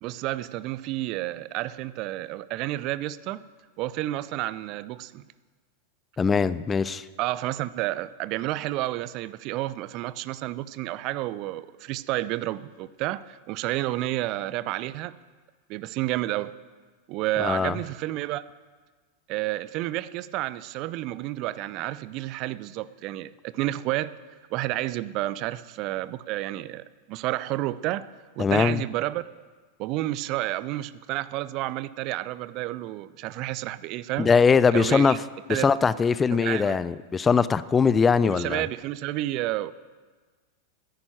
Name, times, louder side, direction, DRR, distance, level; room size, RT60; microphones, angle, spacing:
voice 1, 0.0-3.4 3.8-5.3 7.2-15.2 15.7-16.5 17.1-18.4 19.3-24.1 24.5-28.1 28.4-29.2 29.8-34.3 34.7-35.2 35.5-35.7 36.3-36.8 38.2-39.7, right 16 dB, 40° right, 0.5 m, -30 dB
voice 2, 6.2-7.0 17.4-17.8 28.4-28.8 34.2-35.2 35.5-38.6, left 5 dB, 15° left, 0.4 m, -21 dB
10.5 x 9.7 x 9.0 m
figure-of-eight pair, 90°, 0 cm